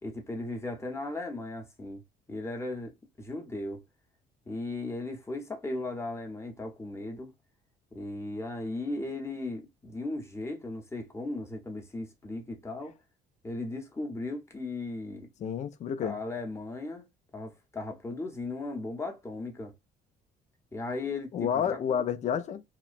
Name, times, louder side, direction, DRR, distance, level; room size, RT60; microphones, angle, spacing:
voice 1, 0.0-2.0 2.3-3.8 4.5-7.3 7.9-13.0 13.4-15.3 16.0-17.1 17.3-19.7 20.7-21.8, left 2 dB, 15° left, 0.9 m, -37 dB
voice 2, 15.4-16.2 21.3-22.6, left 8 dB, 45° left, 0.5 m, -30 dB
2.9 x 2.1 x 2.4 m
cardioid pair, 110°, 17 cm